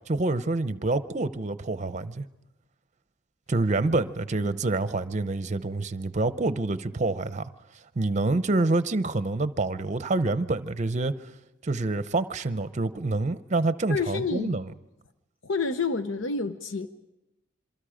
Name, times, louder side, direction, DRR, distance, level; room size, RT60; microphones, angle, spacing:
voice 1, 0.1-2.2 3.5-7.5 8.0-11.1 11.6-14.7, right 2 dB, 40° right, 0.7 m, -27 dB
voice 2, 13.9-14.6 15.4-16.9, left 4 dB, 85° left, 0.8 m, -28 dB
27.0 x 23.5 x 5.1 m
head